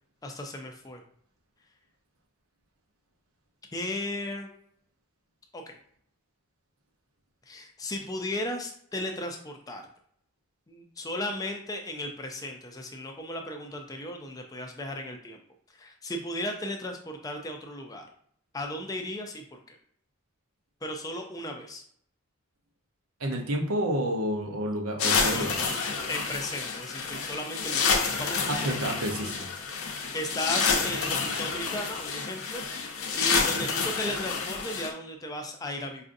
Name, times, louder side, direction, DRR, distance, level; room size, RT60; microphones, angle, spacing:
voice 1, 0.2-1.0 3.7-4.5 5.5-5.8 7.5-9.8 10.7-15.4 15.7-18.1 18.5-19.8 20.8-21.8 25.2-25.7 26.1-28.8 29.9-36.0, left 1 dB, 15° left, 3 dB, 0.4 m, -36 dB
voice 2, 23.2-25.6 28.5-29.5, equal, 80° right, 3 dB, 0.8 m, -29 dB
sound 1, 25.0-34.9, left 5 dB, 75° left, 0.6 m, -29 dB
4.8 x 2.5 x 2.5 m, 0.64 s
head